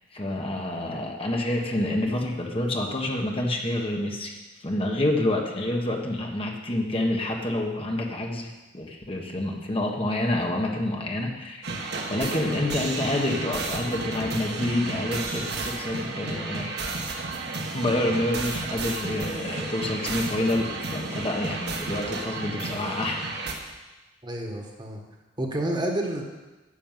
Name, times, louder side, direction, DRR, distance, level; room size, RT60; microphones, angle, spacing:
voice 1, 0.1-4.4 4.6-11.7 12.1-16.9 17.7-23.2, left 1 dB, 30° left, 1 dB, 1.3 m, -28 dB
sound 1, 11.6-23.5, right 3 dB, 60° right, 1.6 m, -32 dB
voice 2, 24.2-25.0 25.4-26.2, right 1 dB, 25° right, 1 dB, 1.6 m, -29 dB
10.0 x 7.0 x 9.2 m, 1.1 s
head